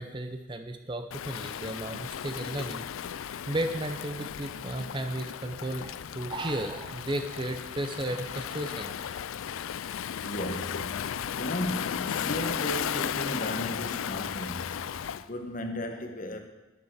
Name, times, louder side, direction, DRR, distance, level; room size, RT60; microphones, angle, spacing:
voice 1, 0.0-2.9 3.5-8.9, right 1 dB, 25° right, 0.7 m, -34 dB
Waves surf, 1.1-15.3, left 9 dB, 90° left, 0.4 m, -35 dB
voice 2, 9.6-16.4, left 1 dB, 40° left, 1.2 m, -36 dB
12.5 x 10.5 x 4.8 m
head